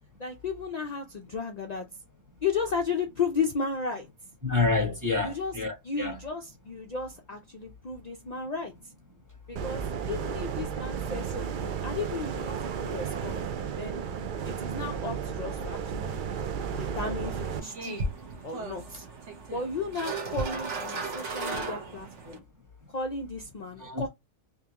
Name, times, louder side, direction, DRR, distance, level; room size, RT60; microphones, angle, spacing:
voice 1, 0.2-1.9 2.4-4.1 5.2-5.5 5.8-8.9 9.5-13.4 13.8-14.0 14.4-16.2 16.8-18.0 18.4-19.1 19.5-22.4 22.9-24.1, left 4 dB, 65° left, 0.4 m, -34 dB
voice 2, 4.4-6.2 23.8-24.1, left 3 dB, 15° right, 0.9 m, -28 dB
sound 1, 9.6-17.6, right 7 dB, 75° right, 0.4 m, -33 dB
sound 2, 16.6-22.4, right 3 dB, 60° right, 1.3 m, -36 dB
3.7 x 2.8 x 2.8 m
omnidirectional pair, 1.5 m